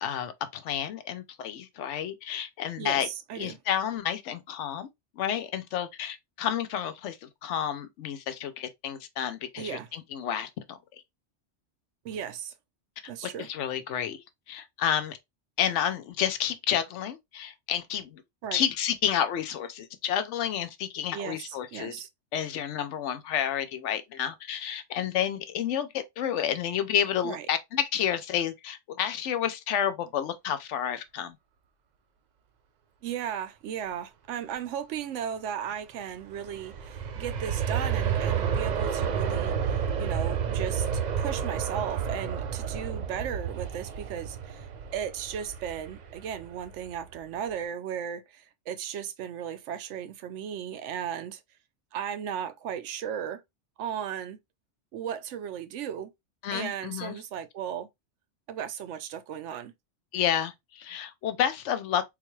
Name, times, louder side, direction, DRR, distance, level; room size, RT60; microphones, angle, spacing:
voice 1, 0.0-3.1 3.4-4.9 5.2-10.8 13.2-15.2 15.6-18.2 18.5-21.9 22.3-31.4 56.4-57.2 60.1-62.0, left 9 dB, 80° left, 0.9 m, -30 dB
voice 2, 2.8-3.6 9.6-9.9 12.0-12.5 13.1-13.5 18.4-18.6 21.1-22.1 27.2-27.5 33.0-40.9 41.2-51.4 51.9-53.4 53.8-54.4 54.9-56.1 56.5-57.9 58.5-59.7, right 9 dB, 90° right, 0.9 m, -36 dB
Aircraft, 36.2-47.1 47.5-47.6, right 7 dB, 60° right, 0.4 m, -30 dB
3.8 x 2.3 x 3.0 m
omnidirectional pair, 1.2 m